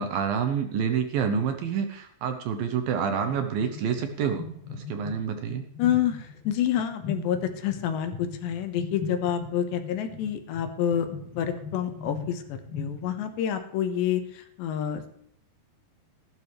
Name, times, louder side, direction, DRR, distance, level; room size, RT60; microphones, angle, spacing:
voice 1, 0.0-4.4 4.7-5.6, right 7 dB, 75° right, 6 dB, 2.3 m, -28 dB
sound 1, 3.3-13.4, left 4 dB, 55° left, 1.6 m, -40 dB
voice 2, 5.8-11.1 11.3-15.1, left 9 dB, 85° left, 8 dB, 3.5 m, -28 dB
15.5 x 12.0 x 3.3 m, 0.71 s
omnidirectional pair, 5.0 m